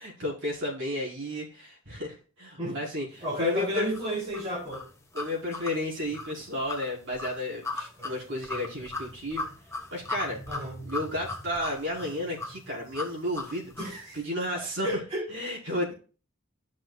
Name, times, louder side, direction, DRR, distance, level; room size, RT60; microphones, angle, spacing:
voice 1, 0.0-3.9 5.1-9.5 9.9-10.4 10.8-13.7 14.1-14.9 15.3-15.9, left 1 dB, 65° right, -3 dB, 3.7 m, -32 dB
voice 2, 3.2-4.8 8.0-8.1 10.5-10.8 13.8-14.2 14.5-15.2, equal, 30° right, -8 dB, 3.6 m, -32 dB
sound 1, 3.9-14.0, left 2 dB, 15° left, 1.1 m, -38 dB
12.5 x 6.2 x 2.3 m, 0.38 s
head